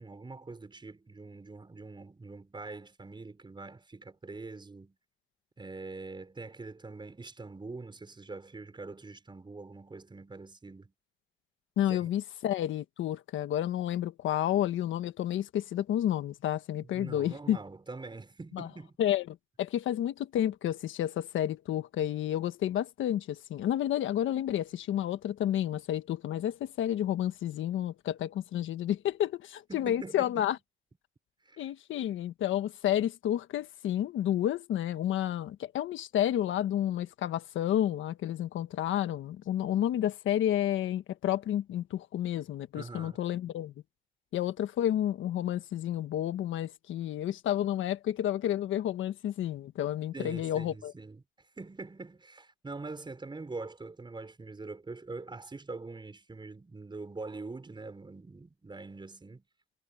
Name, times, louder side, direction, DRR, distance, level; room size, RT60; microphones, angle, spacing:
voice 1, 0.0-5.0 5.6-10.9 11.9-12.1 16.9-18.9 29.7-30.6 31.5-31.7 42.7-43.2 50.1-59.5, right 3 dB, 25° right, 5.6 m, -44 dB
voice 2, 11.8-17.6 18.5-18.7 19.0-30.6 31.6-43.7 44.3-50.9, left 11 dB, 75° left, 1.4 m, -30 dB
cardioid pair, 90°, 20 cm